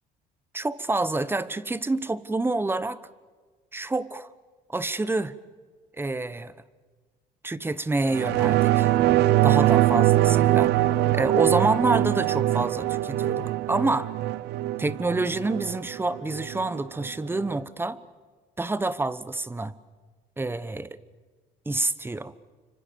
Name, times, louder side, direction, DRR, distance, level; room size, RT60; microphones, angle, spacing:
voice 1, 0.5-3.0 3.7-4.3 4.7-5.3 6.0-6.5 7.4-8.9 9.4-10.7 11.1-14.1 14.8-18.0 18.6-19.8 20.4-21.0 21.7-22.3, right 2 dB, 15° right, 16 dB, 1.1 m, -27 dB
sound 1, 8.1-17.1 17.4-17.5, right 14 dB, 75° right, 0.7 m, -23 dB
30.0 x 26.0 x 7.1 m, 1.4 s
cardioid pair, 110°, 17 cm